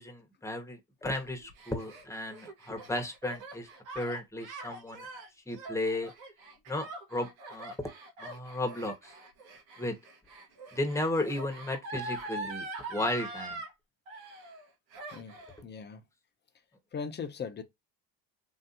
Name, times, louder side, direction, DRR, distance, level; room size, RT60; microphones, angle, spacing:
voice 1, 0.0-3.7 3.9-5.1 5.5-6.1 6.7-7.9 8.2-9.1 9.8-10.0 10.7-13.6, left 1 dB, 5° left, 1.1 m, -34 dB
Gasp, 1.2-13.7 14.1-14.7 14.9-15.6, right 2 dB, 90° right, 1.2 m, -43 dB
voice 2, 15.6-16.0 16.9-17.6, left 6 dB, 25° left, 0.7 m, -39 dB
3.1 x 2.8 x 2.5 m
supercardioid pair, 80°, 40 cm